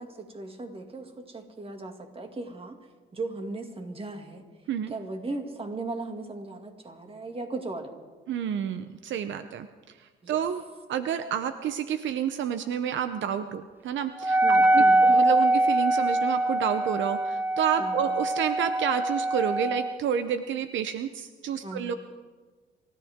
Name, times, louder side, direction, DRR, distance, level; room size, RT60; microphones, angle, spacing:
voice 1, 0.0-2.8 3.1-4.4 4.9-7.9 10.2-10.4 14.4-15.1 17.8-18.1 21.6-22.0, right 2 dB, 30° right, 4 dB, 2.3 m, -37 dB
voice 2, 8.3-10.0 10.3-10.6 10.9-21.9, right 8 dB, 70° right, 10 dB, 0.7 m, -29 dB
Wind instrument woodwind instrument, 14.2-20.0, right 1 dB, 10° right, 0.4 m, -23 dB
27.5 x 14.0 x 3.6 m, 1.4 s
cardioid pair, 90°, 20 cm